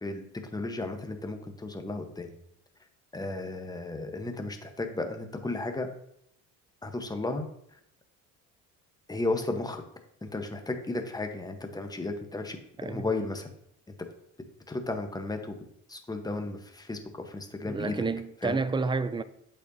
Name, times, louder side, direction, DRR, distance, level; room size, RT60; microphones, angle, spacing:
voice 1, 0.5-2.3 3.1-5.9 6.8-7.5 9.1-9.8 10.2-13.5 14.7-15.6 15.9-18.0 18.4-18.6, left 2 dB, 10° left, 0.9 m, -34 dB
voice 2, 17.7-19.2, right 4 dB, 15° right, 0.3 m, -30 dB
8.2 x 4.4 x 2.7 m
supercardioid pair, 75°, 38 cm